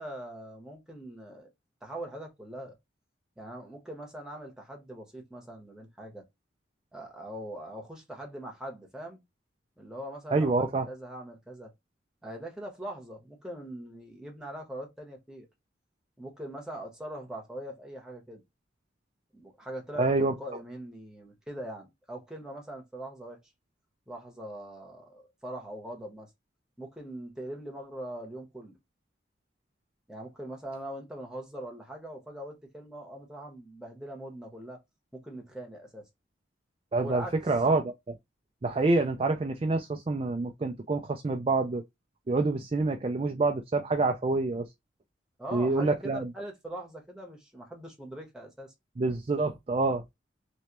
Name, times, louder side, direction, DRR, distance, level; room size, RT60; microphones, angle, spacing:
voice 1, 0.0-1.5 1.8-2.8 3.4-6.3 6.9-9.2 9.8-11.7 12.2-15.5 16.2-18.4 19.3-23.4 24.1-26.3 26.8-28.7 30.1-34.8 35.1-36.1 36.9-37.3 45.4-48.7, right 1 dB, 5° right, 1.1 m, -42 dB
voice 2, 10.3-10.9 20.0-20.3 36.9-38.1 38.6-41.8 42.3-44.7 45.5-46.3 49.0-50.0, right 3 dB, 30° right, 0.4 m, -27 dB
3.2 x 3.0 x 2.9 m
head